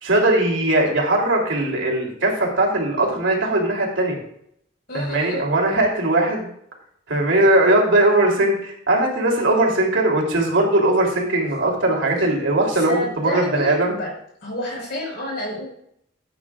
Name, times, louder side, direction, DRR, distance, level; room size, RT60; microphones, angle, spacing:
voice 1, 0.0-4.2 4.9-6.5 7.1-13.9, right 1 dB, 70° right, -1 dB, 3.1 m, -19 dB
voice 2, 4.9-5.5 12.9-14.1 14.4-15.6, left 1 dB, 55° left, -1 dB, 4.8 m, -29 dB
14.5 x 9.2 x 2.4 m, 0.71 s
head